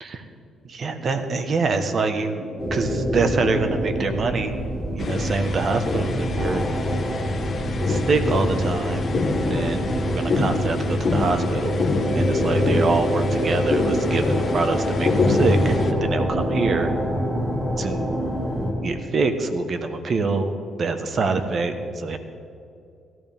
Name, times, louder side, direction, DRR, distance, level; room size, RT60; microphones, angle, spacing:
voice 1, 0.6-4.5 4.9-6.6 7.8-9.1 9.4-11.8 12.1-16.9 17.8-18.3 18.8-20.5 20.8-22.2, right 4 dB, 50° right, 8 dB, 1.2 m, -25 dB
sound 1, 2.6-18.7, equal, 20° right, 3.6 m, -26 dB
sound 2, 5.0-15.9, left 3 dB, 45° left, 1.3 m, -25 dB
18.0 x 14.0 x 3.6 m, 2.5 s
cardioid pair, 90°, 0 cm